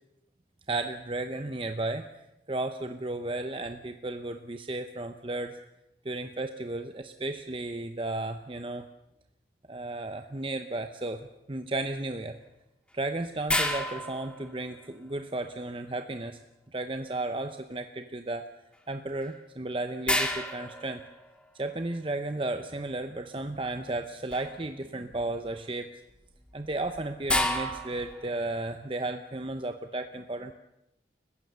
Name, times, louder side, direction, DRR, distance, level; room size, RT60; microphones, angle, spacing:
voice 1, 0.7-2.1 2.5-5.6 6.0-8.9 9.7-12.4 12.9-16.4 16.7-18.5 18.9-21.0 21.5-26.0 26.5-30.5, right 2 dB, 30° right, 7 dB, 0.8 m, -34 dB
sound 1, 13.5-15.0 19.2-19.3 20.1-21.7 24.3-24.7 25.1-25.5 26.4-28.4, left 1 dB, 5° left, 1.9 m, -31 dB
30.0 x 15.5 x 6.8 m, 0.91 s
head